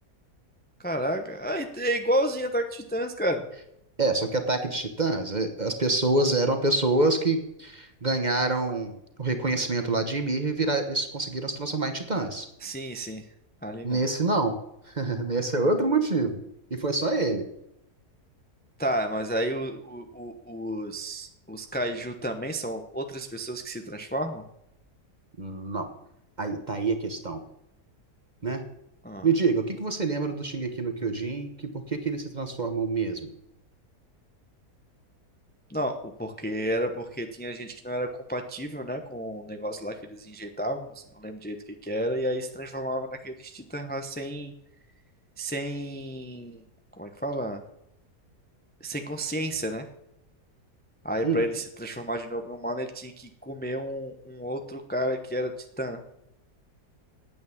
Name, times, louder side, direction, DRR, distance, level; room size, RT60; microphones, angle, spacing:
voice 1, 0.8-3.5 12.6-13.2 13.6-14.0 18.8-24.4 29.0-29.3 35.7-41.6 41.8-44.5 45.4-46.6 47.0-47.6 48.8-49.9 51.0-55.5 55.8-56.0, equal, 10° left, 5 dB, 0.6 m, -31 dB
voice 2, 4.0-12.5 13.8-14.5 14.9-16.4 16.7-17.4 25.4-25.9 26.4-27.4 28.4-28.6 29.2-31.5 31.7-33.3 51.2-51.4, right 3 dB, 30° right, 7 dB, 1.1 m, -26 dB
9.5 x 8.6 x 7.1 m, 0.80 s
omnidirectional pair, 1.7 m